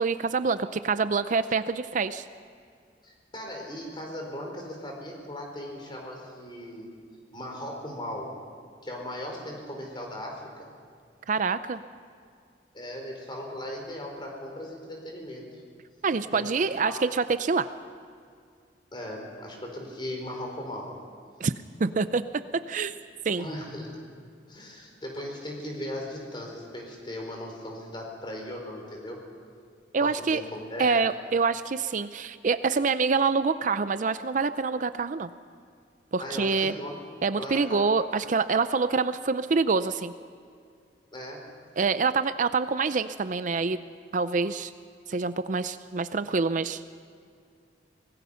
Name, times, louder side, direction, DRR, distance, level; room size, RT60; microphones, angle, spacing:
voice 1, 0.0-2.2 11.3-11.8 16.0-17.7 21.4-21.5 21.8-22.2 22.7-22.9 23.2-23.5 29.9-30.4 30.8-35.3 36.1-36.7 37.2-40.1 41.8-43.8 44.1-44.7 45.1-46.8, right 4 dB, 45° right, 12 dB, 0.5 m, -26 dB
voice 2, 3.0-6.9 7.3-8.3 8.8-10.7 12.7-15.6 16.3-16.5 16.8-16.9 18.9-20.9 23.4-24.0 24.5-29.2 30.0-31.0 36.2-36.9 37.4-37.9 41.1-41.4, left 1 dB, 25° left, 0 dB, 4.6 m, -38 dB
24.5 x 19.5 x 5.7 m, 2.3 s
head